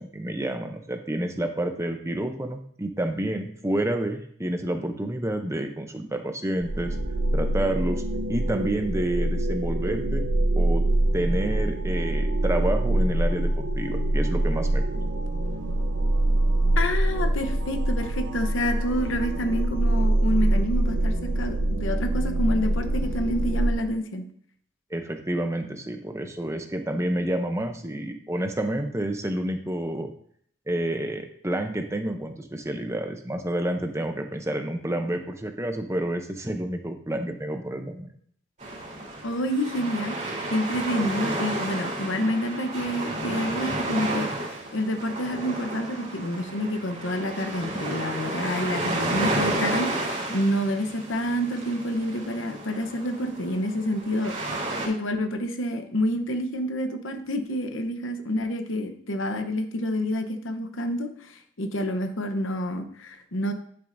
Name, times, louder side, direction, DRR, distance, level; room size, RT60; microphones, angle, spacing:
voice 1, 0.0-7.0 7.3-8.0 8.3-10.2 10.6-10.8 11.1-15.0 24.9-30.1 30.7-38.1, right 1 dB, 15° right, 6 dB, 0.6 m, -29 dB
sound 1, 6.6-23.7, right 1 dB, 75° right, 0.8 m, -24 dB
voice 2, 16.8-24.3 39.2-54.3 54.8-63.5, equal, 75° left, 7 dB, 0.9 m, -28 dB
sound 2, 38.6-54.9, right 2 dB, 40° right, 3.3 m, -31 dB
11.0 x 6.9 x 2.6 m, 0.62 s
head